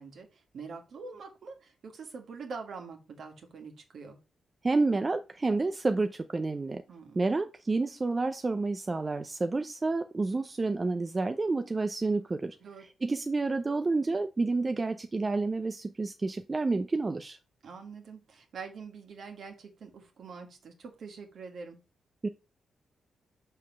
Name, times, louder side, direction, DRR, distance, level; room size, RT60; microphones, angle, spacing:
voice 1, 0.0-4.2 6.9-7.2 12.6-12.9 17.6-21.8, right 5 dB, 65° right, 2.1 m, -45 dB
voice 2, 4.6-6.8 7.2-17.4 22.2-22.3, right 3 dB, 35° right, 0.7 m, -29 dB
5.5 x 4.6 x 6.1 m
hypercardioid pair, 40°, 0 cm